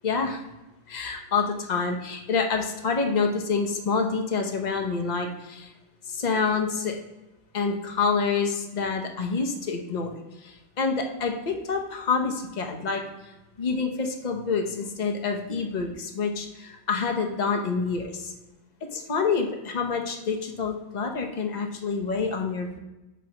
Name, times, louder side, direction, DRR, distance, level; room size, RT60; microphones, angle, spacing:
voice 1, 0.0-0.4 0.9-5.7 6.1-7.0 7.5-10.1 10.4-13.0 13.6-18.3 18.9-22.8, left 5 dB, 55° left, 3 dB, 0.4 m, -27 dB
8.2 x 2.9 x 5.3 m, 1.0 s
omnidirectional pair, 1.9 m